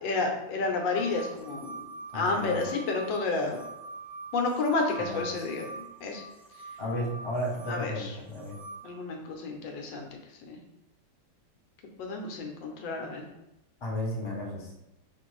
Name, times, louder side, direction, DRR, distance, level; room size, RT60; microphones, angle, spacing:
voice 1, 0.0-1.8 2.1-3.6 4.3-5.7 6.0-6.2 7.7-8.1 8.8-10.1 10.5-10.6 12.0-13.2, left 3 dB, 80° left, 2 dB, 1.4 m, -30 dB
sound 1, 0.9-8.8, right 3 dB, 70° right, 0.5 m, -44 dB
voice 2, 2.1-2.6 5.0-5.2 6.8-8.5 13.8-14.7, left 1 dB, 45° left, -3 dB, 0.3 m, -33 dB
5.2 x 2.5 x 3.1 m, 0.90 s
omnidirectional pair, 2.0 m